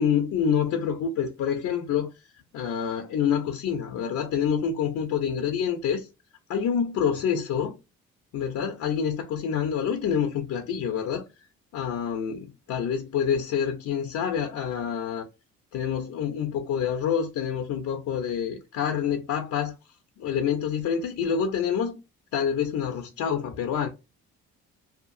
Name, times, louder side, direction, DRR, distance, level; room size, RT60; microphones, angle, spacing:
voice 1, 0.0-2.1 2.5-6.1 6.5-7.8 8.3-11.2 11.7-15.3 15.7-19.8 20.2-22.0 22.3-23.9, left 7 dB, 70° left, 0.6 m, -27 dB
2.7 x 2.4 x 2.4 m
cardioid pair, 90°, 30 cm